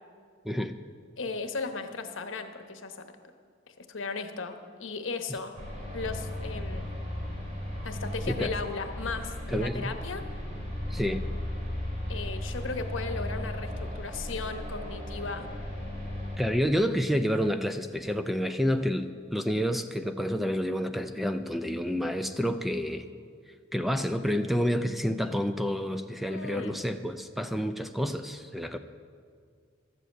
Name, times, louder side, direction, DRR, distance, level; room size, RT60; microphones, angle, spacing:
voice 1, 0.4-0.7 8.3-8.5 9.5-9.9 10.9-11.2 16.4-23.0 23.7-28.8, equal, ahead, 8 dB, 0.4 m, -29 dB
voice 2, 1.2-3.0 3.8-5.5 5.9-6.9 7.8-10.2 12.1-15.5 24.6-24.7 26.3-26.8, left 4 dB, 80° left, 6 dB, 1.0 m, -36 dB
sound 1, 5.5-16.4, left 1 dB, 40° right, 3.2 m, -36 dB
12.5 x 7.7 x 7.8 m, 2.1 s
head